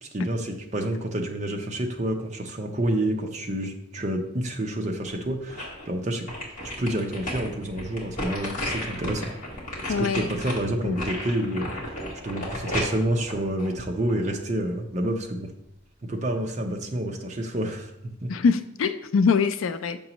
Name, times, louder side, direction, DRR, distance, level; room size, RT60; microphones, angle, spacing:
voice 1, 0.0-6.3 6.8-9.3 10.0-11.7 12.2-15.5 16.0-18.3, right 1 dB, 35° right, 3 dB, 0.6 m, -28 dB
sound 1, 5.0-5.9 6.3-14.3 14.8-14.9, left 1 dB, 40° left, 1.5 m, -33 dB
voice 2, 9.9-10.2 10.8-11.0 18.3-20.0, left 5 dB, 65° left, 11 dB, 0.4 m, -23 dB
6.8 x 5.3 x 3.0 m, 0.81 s
head